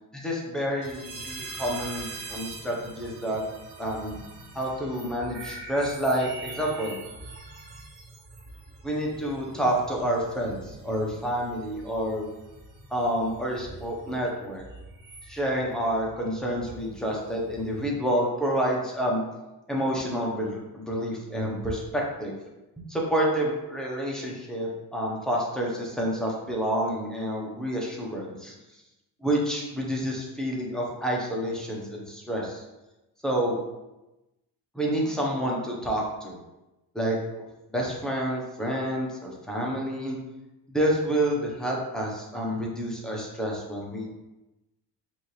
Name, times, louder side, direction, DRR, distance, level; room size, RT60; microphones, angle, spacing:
voice 1, 0.1-3.4 3.8-4.2 4.5-7.0 8.8-12.3 12.9-14.6 15.3-19.2 19.7-22.3 22.9-28.6 29.2-32.6 33.2-33.6 34.7-36.4 36.9-37.2 37.7-40.2 40.7-44.1, right 1 dB, ahead, -3 dB, 0.9 m, -28 dB
sound 1, 0.8-17.8, right 2 dB, 80° right, 1.2 m, -44 dB
4.4 x 2.8 x 3.2 m, 1.0 s
cardioid pair, 110°, 41 cm